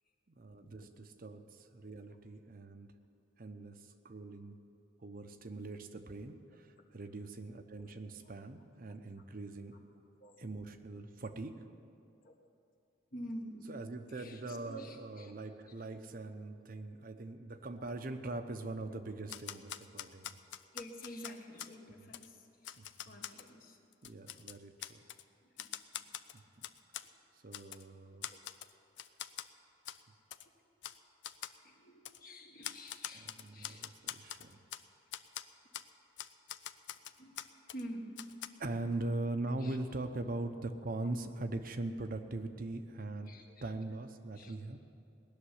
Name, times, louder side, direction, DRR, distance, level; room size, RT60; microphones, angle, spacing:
voice 1, 0.3-2.9 3.4-4.6 5.0-9.8 10.4-11.6 13.7-20.4 22.0-22.1 22.8-23.2 24.0-25.0 26.3-26.7 27.4-28.3 33.1-34.6 38.6-43.4 43.6-44.8, right 2 dB, 50° right, 7 dB, 0.8 m, -41 dB
voice 2, 7.8-8.3 10.2-10.4 12.2-12.3 13.1-13.7 14.1-15.3 18.9-19.0 20.7-22.5 23.0-23.8 25.4-25.7 28.3-28.4 31.6-33.9 37.2-37.3 37.7-38.2 39.6-39.8 43.3-43.7 44.3-44.5, equal, 50° left, 2 dB, 1.6 m, -48 dB
Typewriter, 19.3-21.7 22.1-22.3 22.6-23.5 23.9-25.2 25.6-27.1 27.5-27.8 28.2-28.7 29.0-29.5 29.8-30.0 30.3-30.4 30.8-31.0 31.2-31.6 32.0-32.2 32.6-34.8 35.1-35.4 35.7-35.9 36.2-37.8 38.2-38.5, left 11 dB, 70° left, 0.5 m, -44 dB
19.0 x 6.7 x 9.9 m, 2.5 s
head